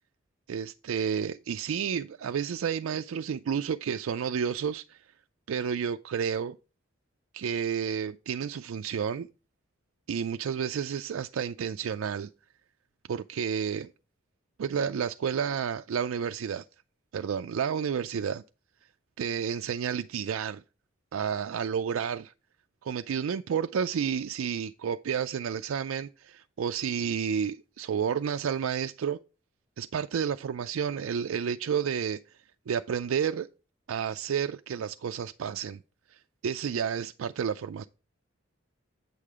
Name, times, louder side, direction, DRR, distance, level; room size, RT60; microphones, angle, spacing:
voice 1, 0.5-5.0 5.5-6.6 7.3-9.3 10.1-12.3 13.1-13.9 14.6-16.6 17.1-18.4 19.2-20.6 21.1-22.3 22.8-29.2 29.8-32.2 32.7-33.5 33.9-35.8 36.1-37.8, right 7 dB, 85° right, 0.4 m, -31 dB
8.4 x 6.6 x 3.6 m
head